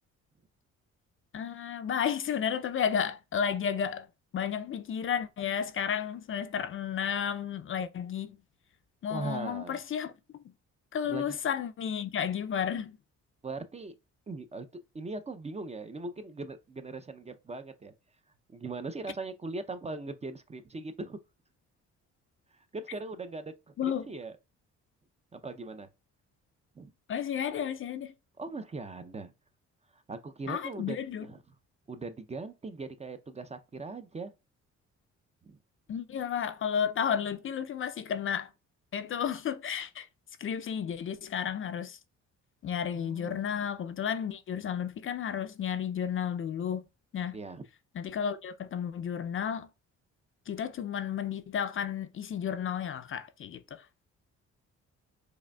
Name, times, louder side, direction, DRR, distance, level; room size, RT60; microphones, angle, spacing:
voice 1, 1.3-4.1 4.3-8.4 9.0-10.1 10.9-13.0 23.8-24.1 27.1-28.1 30.5-31.3 35.9-38.5 38.9-40.1 40.4-42.0 42.6-46.9 47.1-47.4 47.9-49.7 50.5-53.9, left 8 dB, 45° left, 0.4 m, -32 dB
voice 2, 9.1-9.8 11.1-11.4 13.4-13.9 14.3-14.7 14.9-17.9 18.5-21.2 22.7-23.7 24.1-24.4 25.3-25.9 26.8-26.9 28.4-29.3 29.9-31.4 31.9-34.3 35.4-35.6 42.9-43.6 47.3-47.6, right 3 dB, 20° right, 0.5 m, -40 dB
4.8 x 2.6 x 2.2 m
cardioid pair, 90°, 30 cm